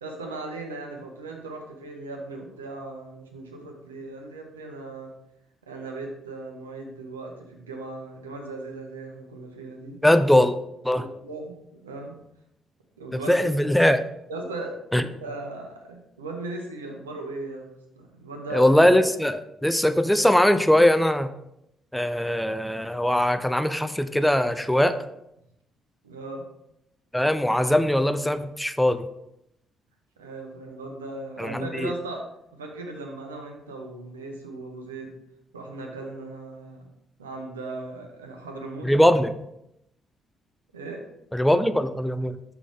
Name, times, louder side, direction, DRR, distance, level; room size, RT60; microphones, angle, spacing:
voice 1, 0.0-5.1 5.6-10.0 10.9-12.1 13.0-13.3 14.3-18.7 26.0-26.4 30.2-32.2 32.5-35.1 35.5-36.8 37.2-38.9 40.7-41.0, right 2 dB, 85° right, 2 dB, 0.9 m, -37 dB
voice 2, 10.0-10.6 10.8-11.0 13.3-14.0 14.9-15.0 18.5-21.3 21.9-24.9 27.1-29.1 31.4-31.9 38.8-39.3 41.3-42.4, left 1 dB, 5° left, 11 dB, 0.5 m, -21 dB
6.1 x 5.8 x 3.6 m, 0.81 s
figure-of-eight pair, 45°, 0 cm